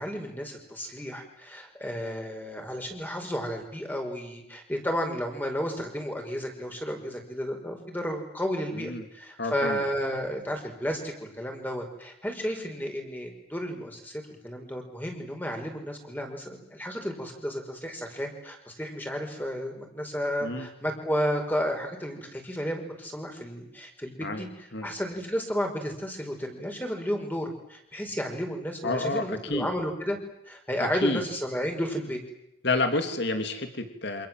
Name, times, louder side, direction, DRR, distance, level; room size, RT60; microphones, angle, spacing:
voice 1, 0.0-30.2 30.5-32.2, equal, 10° left, 3 dB, 5.3 m, -32 dB
voice 2, 8.7-9.0 9.4-9.8 20.4-20.7 24.2-24.5 24.7-24.9 28.8-29.7 30.8-31.2 32.6-34.3, left 2 dB, 55° left, 7 dB, 3.0 m, -29 dB
28.5 x 27.0 x 7.7 m, 0.79 s
head